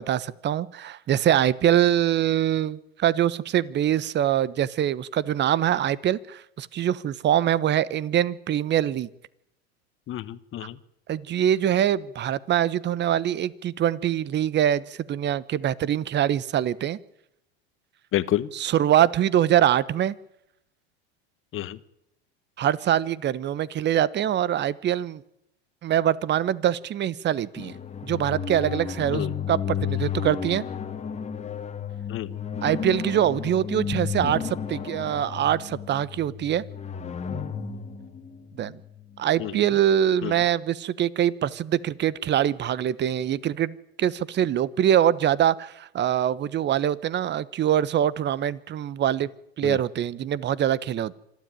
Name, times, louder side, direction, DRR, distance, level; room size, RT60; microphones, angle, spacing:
voice 1, 0.0-9.1 11.1-17.0 18.5-20.2 22.6-25.2 25.8-27.7 28.0-30.6 32.6-36.6 38.6-38.8 39.2-49.3 49.6-51.1, right 10 dB, 30° right, 21 dB, 1.0 m, -24 dB
voice 2, 10.1-10.8 18.1-18.5 21.5-21.8 29.1-29.3 32.1-32.3 39.4-39.7 40.2-40.4 49.6-49.8, left 13 dB, 40° left, 14 dB, 1.3 m, -29 dB
sound 1, 27.6-39.2, left 7 dB, 20° left, 1.8 m, -33 dB
26.0 x 12.5 x 9.0 m, 0.83 s
supercardioid pair, 110°, 34 cm